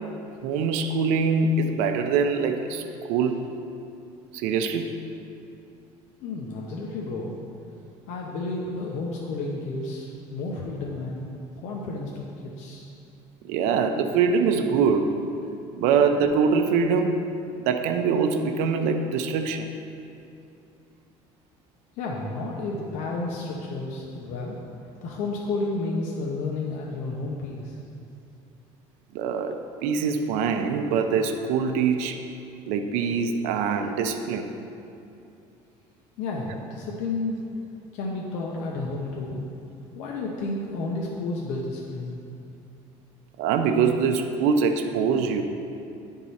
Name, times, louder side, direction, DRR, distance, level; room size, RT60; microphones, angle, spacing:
voice 1, 0.4-2.8 3.1-3.4 4.4-4.9 13.5-15.1 15.8-17.2 17.7-19.7 29.1-32.2 32.7-34.5 43.4-45.4, right 5 dB, 80° right, 6 dB, 0.6 m, -23 dB
voice 2, 6.2-7.4 8.1-11.3 11.6-12.9 22.0-24.6 25.0-27.7 36.2-37.4 37.9-39.4 39.9-42.1, left 3 dB, 70° left, -2 dB, 0.8 m, -31 dB
10.5 x 3.7 x 4.1 m, 2.6 s
cardioid pair, 135°, 13 cm